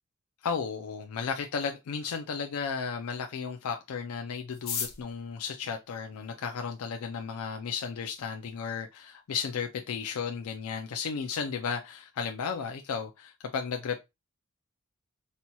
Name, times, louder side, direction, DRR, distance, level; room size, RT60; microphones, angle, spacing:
voice 1, 0.4-14.0, left 6 dB, 80° left, 0.4 m, -34 dB
sound 1, 4.5-6.7 7.5-7.6 7.9-8.0 8.2-8.7 9.0-9.1 9.3-9.7 10.1-10.2 10.6-10.9, left 7 dB, 45° left, 0.7 m, -38 dB
4.2 x 2.2 x 2.8 m
head